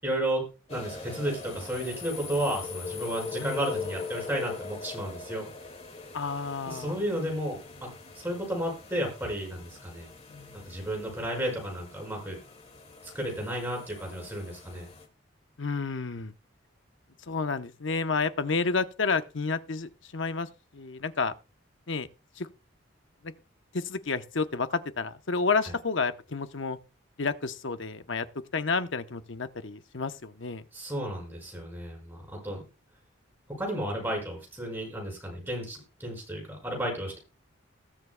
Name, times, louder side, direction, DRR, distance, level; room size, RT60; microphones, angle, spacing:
voice 1, 0.0-5.5 6.7-7.9 8.1-10.1 10.5-12.4 13.0-14.9 30.7-32.6 33.6-37.2, right 1 dB, 10° right, 5.8 m, -33 dB
sound 1, 0.7-15.1, left 4 dB, 30° left, 2.0 m, -42 dB
voice 2, 6.1-7.0 10.3-10.7 15.6-16.3 17.3-21.3 21.9-22.1 22.4-22.5 23.2-23.3 23.7-26.8 27.2-28.3 28.5-30.6, left 4 dB, 65° left, 0.8 m, -30 dB
20.5 x 7.4 x 2.2 m
head